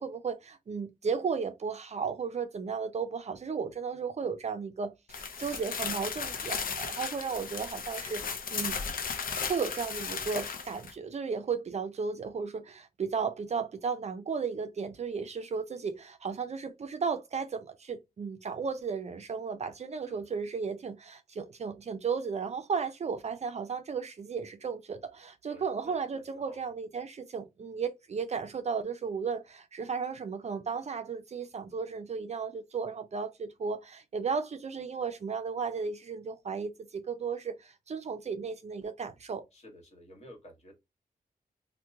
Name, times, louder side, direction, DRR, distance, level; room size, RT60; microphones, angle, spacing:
voice 1, 0.0-8.8 9.4-39.4, right 5 dB, 45° right, 0.5 m, -34 dB
sound 1, 5.1-10.9, left 5 dB, 70° left, 0.6 m, -35 dB
voice 2, 25.5-26.6 39.5-40.7, left 1 dB, 45° left, 1.4 m, -52 dB
2.9 x 2.2 x 3.4 m
wide cardioid pair, 100°, 15 cm